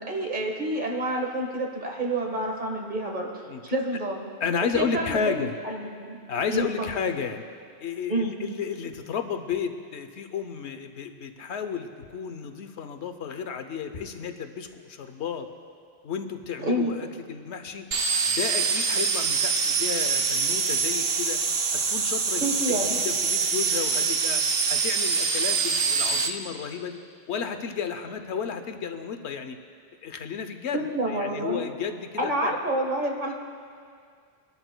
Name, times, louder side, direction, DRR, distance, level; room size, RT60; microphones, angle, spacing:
voice 1, 0.0-4.3 4.7-6.2 6.5-6.9 8.1-8.4 16.6-16.9 22.4-23.0 30.7-31.7 32.1-33.3, right 1 dB, 45° right, 0 dB, 1.5 m, -28 dB
voice 2, 4.4-5.5 6.3-7.4 7.8-15.5 16.0-17.9 18.3-21.4 21.9-24.4 24.7-27.0 27.3-29.6 30.0-32.5, left 6 dB, 85° left, 7 dB, 1.0 m, -32 dB
sound 1, 17.9-26.3, right 5 dB, 65° right, 0.9 m, -25 dB
22.0 x 12.0 x 2.2 m, 2.2 s
omnidirectional pair, 1.1 m